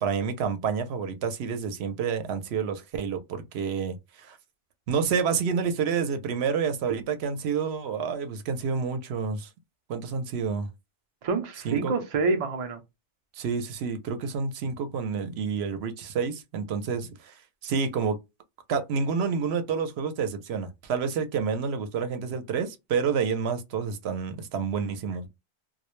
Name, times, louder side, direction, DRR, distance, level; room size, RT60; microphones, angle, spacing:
voice 1, 0.0-4.4 4.9-9.5 9.9-10.7 11.6-11.9 13.4-18.2 18.7-25.3, right 6 dB, 80° right, 0.8 m, -29 dB
voice 2, 11.2-12.8, right 4 dB, 45° right, 0.5 m, -27 dB
2.2 x 2.0 x 3.0 m
omnidirectional pair, 1.1 m